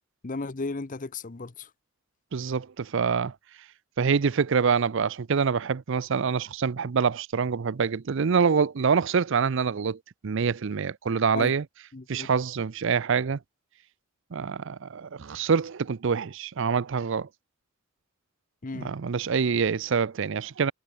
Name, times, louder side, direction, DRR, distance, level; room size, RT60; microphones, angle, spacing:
voice 1, 0.2-1.7 11.3-11.5 11.9-12.3 18.6-18.9, left 3 dB, 40° left, 0.7 m, -35 dB
voice 2, 2.3-3.3 4.0-11.6 12.1-13.4 14.3-17.3 18.7-20.7, right 6 dB, 60° right, 0.5 m, -26 dB
head